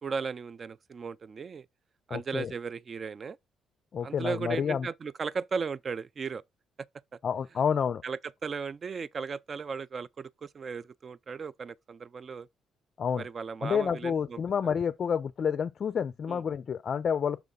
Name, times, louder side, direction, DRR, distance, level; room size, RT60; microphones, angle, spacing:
voice 1, 0.0-1.7 2.1-3.4 4.0-6.4 7.1-7.2 8.0-12.5 13.2-14.4 16.3-16.4, right 5 dB, 45° right, 0.4 m, -36 dB
voice 2, 2.1-2.5 3.9-4.9 7.2-8.0 13.0-13.2 13.6-17.4, left 7 dB, 50° left, 0.4 m, -29 dB
6.0 x 3.5 x 5.3 m
cardioid pair, 80°, 0 cm